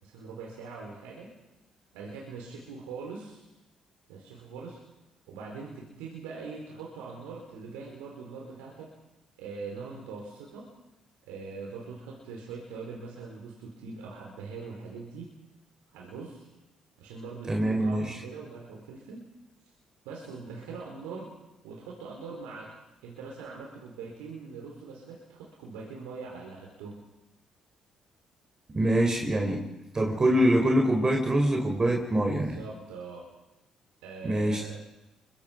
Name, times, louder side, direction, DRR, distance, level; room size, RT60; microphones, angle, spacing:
voice 1, 0.0-1.3 1.9-3.5 4.1-4.8 5.3-8.9 9.4-10.7 11.2-15.3 15.9-16.5 17.0-19.2 20.0-21.3 21.6-22.7 23.0-27.0 32.3-33.3 34.0-34.8, right 4 dB, 85° right, -2 dB, 4.7 m, -42 dB
voice 2, 17.5-18.2 28.7-29.6 29.9-32.6 34.2-34.8, right 1 dB, 30° right, 1 dB, 4.5 m, -24 dB
29.0 x 24.0 x 5.4 m, 0.96 s
hypercardioid pair, 55°, 2 cm